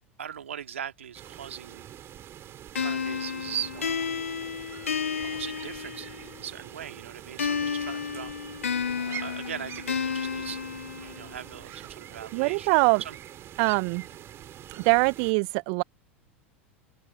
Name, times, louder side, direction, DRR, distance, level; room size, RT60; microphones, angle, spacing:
voice 1, 0.2-1.9 2.8-4.1 5.2-8.3 8.9-10.6 10.9-13.2, right 9 dB, 75° right, 2.3 m, -39 dB
sound 1, 1.1-15.3, right 11 dB, 35° right, 2.7 m, -45 dB
sound 2, 2.8-6.4 7.4-11.4, left 6 dB, 80° left, 1.7 m, -32 dB
voice 2, 12.3-13.0 13.6-14.1 14.7-15.8, right 37 dB, 55° right, 0.7 m, -23 dB
figure-of-eight pair, 80°, 7 cm